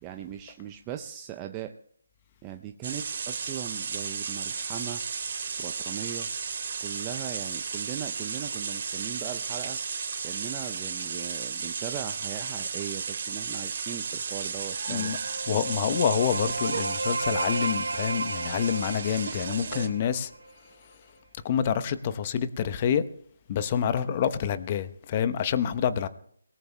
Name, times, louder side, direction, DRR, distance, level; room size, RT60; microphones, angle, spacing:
voice 1, 0.0-1.8 2.4-5.0 5.6-6.3 6.8-9.8 10.2-15.1, right 11 dB, 15° right, 0.5 m, -39 dB
sound 1, 2.8-19.9, right 5 dB, 45° right, 2.9 m, -34 dB
sound 2, 14.8-20.5, right 2 dB, 70° right, 1.4 m, -33 dB
voice 2, 15.5-20.3 21.4-23.0 23.5-26.1, left 8 dB, 30° left, 0.8 m, -27 dB
30.0 x 18.5 x 2.2 m
figure-of-eight pair, 150°, 0 cm